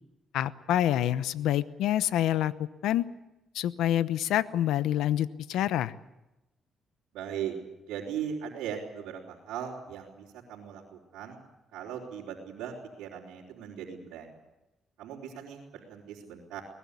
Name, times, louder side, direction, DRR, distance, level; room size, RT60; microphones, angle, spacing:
voice 1, 0.3-3.1 3.5-5.9, left 12 dB, 85° left, 15 dB, 0.9 m, -27 dB
voice 2, 7.1-7.5 7.8-11.4 11.7-14.3 15.0-16.6, right 8 dB, 85° right, -6 dB, 4.1 m, -39 dB
23.5 x 19.5 x 8.4 m, 0.97 s
cardioid pair, 90°, 0 cm